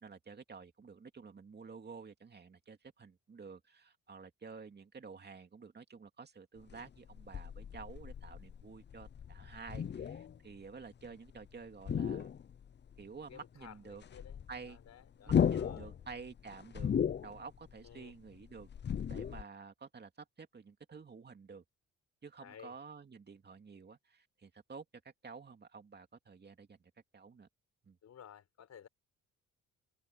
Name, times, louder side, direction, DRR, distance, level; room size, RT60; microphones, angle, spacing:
voice 1, 0.0-12.3 13.0-14.0 14.5-14.8 15.3-16.9 17.2-18.7 19.1-21.6 22.2-26.8 27.1-27.5 27.8-28.0, right 5 dB, 35° right, 2.6 m, -51 dB
sound 1, 6.6-11.5 11.7-13.0 13.3-13.4 13.7-19.4, left 8 dB, 35° left, 0.7 m, -36 dB
voice 2, 13.3-15.9 17.8-18.1 22.4-22.7 28.0-28.9, left 9 dB, 60° left, 4.9 m, -55 dB
cardioid pair, 90°, 30 cm